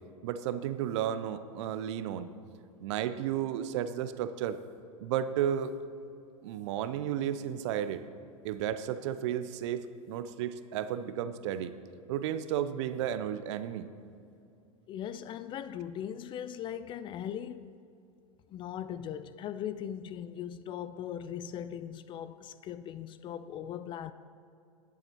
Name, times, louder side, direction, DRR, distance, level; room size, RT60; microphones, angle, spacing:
voice 1, 0.2-2.3 2.8-4.6 5.0-5.7 6.4-8.0 8.4-11.7 12.1-13.9, right 10 dB, 55° right, 0.6 m, -33 dB
voice 2, 14.9-17.7 18.5-24.1, left 9 dB, 25° left, 0.4 m, -39 dB
19.5 x 7.2 x 3.0 m
figure-of-eight pair, 90°, 18 cm